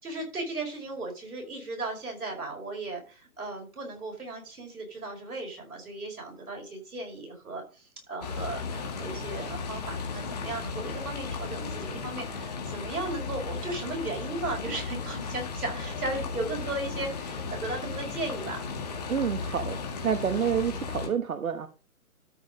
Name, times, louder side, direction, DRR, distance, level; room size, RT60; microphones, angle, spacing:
voice 1, 0.0-18.6 20.0-20.3, right 2 dB, 90° right, 1 dB, 5.4 m, -36 dB
sound 1, 8.2-21.1, left 4 dB, 30° left, 1.9 m, -35 dB
voice 2, 19.1-19.8 20.0-21.7, right 7 dB, 70° right, 10 dB, 1.1 m, -28 dB
12.5 x 5.5 x 5.1 m, 0.35 s
hypercardioid pair, 175°, 43 cm